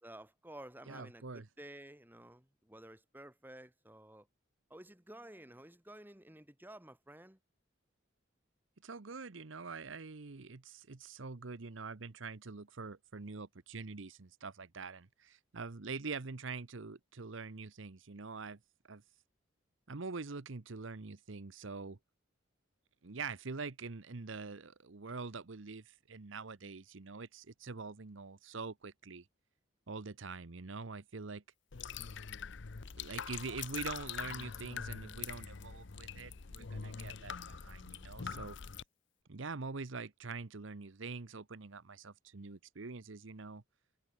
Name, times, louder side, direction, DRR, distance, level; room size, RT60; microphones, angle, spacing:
voice 1, 0.0-4.3 4.7-7.4, right 1 dB, 10° right, 2.3 m, -53 dB
voice 2, 0.9-1.5 8.8-18.6 18.9-19.0 19.9-22.0 23.0-29.3 29.9-31.4 33.0-38.6 39.3-43.6, right 4 dB, 70° right, 0.9 m, -45 dB
sound 1, 31.7-38.8, left 6 dB, 65° left, 0.8 m, -44 dB
head